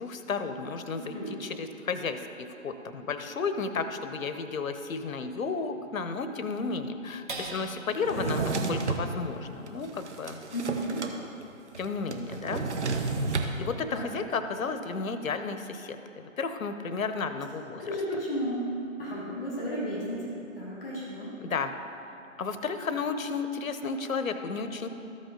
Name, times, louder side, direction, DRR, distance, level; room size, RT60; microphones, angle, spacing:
voice 1, 0.0-10.4 11.8-12.7 13.6-17.8 21.4-21.7 22.4-24.9, left 4 dB, 80° left, 9 dB, 0.8 m, -33 dB
voice 2, 1.0-1.3 8.1-8.3 10.5-11.0 13.9-14.0 17.8-20.3 20.5-21.3, equal, 5° left, -20 dB, 0.5 m, -33 dB
Drawer open or close, 8.0-9.1 9.7-11.2 11.4-11.5 11.7-13.5, right 4 dB, 55° right, 0.9 m, -31 dB
sound 1, 15.2-15.5, right 2 dB, 40° right, 1.2 m, -47 dB
13.5 x 5.4 x 3.8 m, 2.8 s
figure-of-eight pair, 155°, 40 cm